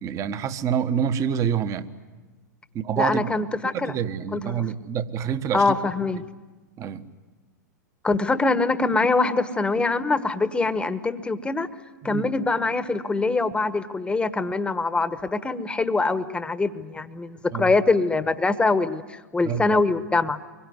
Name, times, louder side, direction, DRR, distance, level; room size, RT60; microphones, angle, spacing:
voice 1, 0.0-1.9 2.7-3.3 3.6-5.7 6.8-7.1 12.0-12.3 17.5-17.7 19.4-19.8, right 8 dB, 30° right, 11 dB, 1.4 m, -27 dB
voice 2, 3.0-3.9 4.3-4.6 5.5-6.2 8.0-11.7 12.0-20.4, left 3 dB, 10° left, 12 dB, 1.3 m, -23 dB
24.5 x 22.5 x 9.6 m, 1.3 s
hypercardioid pair, 105°, 10 cm